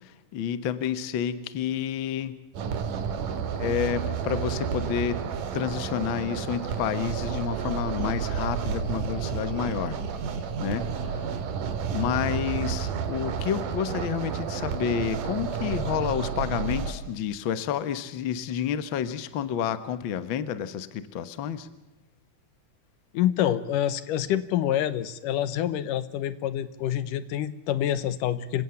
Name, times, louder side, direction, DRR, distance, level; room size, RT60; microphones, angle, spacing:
voice 1, 0.3-2.3 3.6-5.2 5.5-10.0 10.6-10.9 11.9-21.7, left 8 dB, 55° left, 13 dB, 1.4 m, -29 dB
sound 1, 2.5-16.9, right 6 dB, 75° right, 3.3 m, -31 dB
voice 2, 23.1-28.6, left 11 dB, 85° left, 15 dB, 2.6 m, -27 dB
28.0 x 16.5 x 7.0 m, 0.90 s
omnidirectional pair, 3.7 m